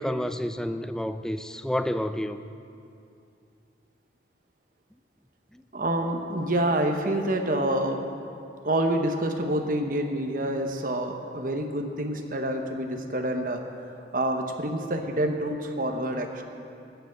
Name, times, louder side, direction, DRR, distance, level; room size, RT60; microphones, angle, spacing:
voice 1, 0.0-2.4, equal, 5° left, 0.3 m, -29 dB
voice 2, 5.7-8.0 8.6-13.6 14.1-16.4, right 1 dB, 45° right, 1.0 m, -27 dB
14.0 x 7.0 x 8.5 m
head